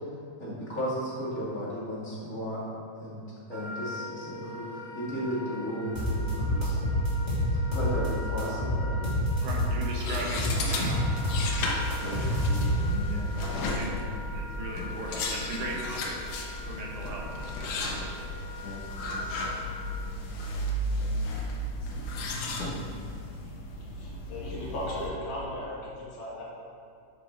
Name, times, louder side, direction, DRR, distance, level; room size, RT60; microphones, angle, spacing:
voice 1, 0.4-2.6 3.0-3.2 3.5-7.0 7.5-9.3 10.3-10.4 12.0-13.1 14.8-14.9 18.6-19.2 20.0-20.3, equal, 30° left, -7 dB, 2.2 m, -35 dB
Wind instrument woodwind instrument, 3.5-20.1, left 1 dB, 40° right, 2.1 m, -43 dB
sound 1, 5.9-8.1 8.4-9.8 10.1-13.1, left 1 dB, 20° right, 1.3 m, -27 dB
voice 2, 9.4-12.3 13.1-13.3 13.7-16.2 16.6-18.1, right 2 dB, 75° right, -2 dB, 2.6 m, -39 dB
sound 2, 9.6-25.1, left 1 dB, 90° left, 2.6 m, -34 dB
voice 3, 23.9-26.4, left 1 dB, 75° left, -6 dB, 3.4 m, -36 dB
9.8 x 7.1 x 4.5 m, 2.5 s
omnidirectional pair, 3.5 m